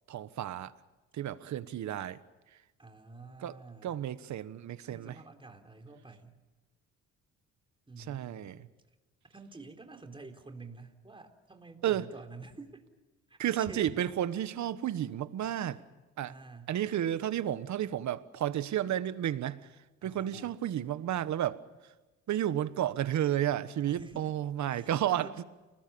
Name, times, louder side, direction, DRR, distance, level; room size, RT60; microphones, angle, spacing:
voice 1, 0.1-0.7 1.1-2.2 3.4-3.6 3.8-5.2 8.0-8.7 11.8-12.0 13.4-15.8 16.2-16.3 16.7-19.7 20.0-21.6 22.3-25.3, right 11 dB, 70° right, 1.4 m, -32 dB
voice 2, 2.8-4.0 4.8-6.4 7.9-8.6 9.3-12.9 13.3-13.9 16.2-16.7 20.0-20.5 23.9-24.2 24.7-25.5, right 3 dB, 15° right, 3.8 m, -49 dB
29.5 x 20.0 x 7.1 m
cardioid pair, 90°, 30 cm